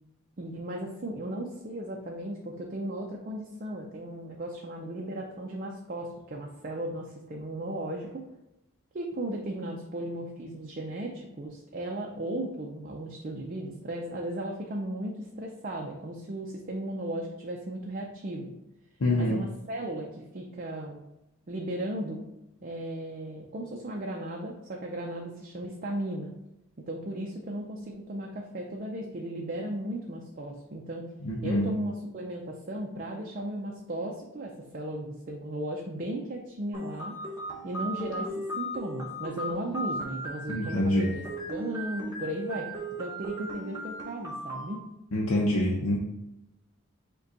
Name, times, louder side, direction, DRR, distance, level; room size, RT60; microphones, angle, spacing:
voice 1, 0.4-8.2 8.9-18.6 19.2-21.0 21.5-22.2 22.6-26.3 26.9-31.1 31.4-37.2 37.6-44.9, right 1 dB, 40° right, 0 dB, 0.4 m, -36 dB
voice 2, 19.0-19.4 31.2-31.7 40.5-41.1 45.1-46.0, left 1 dB, 85° left, -3 dB, 0.6 m, -26 dB
sound 1, 36.7-44.7, right 1 dB, 20° right, 0.8 m, -37 dB
5.2 x 2.3 x 3.9 m, 0.90 s
head